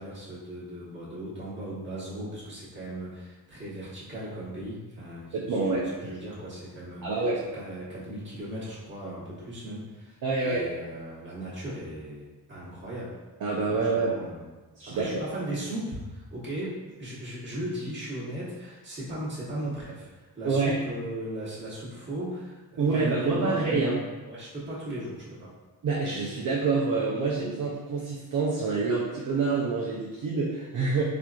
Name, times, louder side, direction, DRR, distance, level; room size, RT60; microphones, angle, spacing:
voice 1, 0.0-7.2 7.5-13.2 13.7-14.5 14.8-24.0 24.3-25.6, right 1 dB, 30° right, -8 dB, 1.1 m, -37 dB
voice 2, 5.3-6.2 7.0-7.4 10.2-10.7 13.4-14.2 14.7-15.2 20.4-20.8 22.8-24.0 25.8-31.0, right 4 dB, 55° right, -3 dB, 0.5 m, -27 dB
4.3 x 2.5 x 2.3 m, 1.2 s
wide cardioid pair, 145°, 39 cm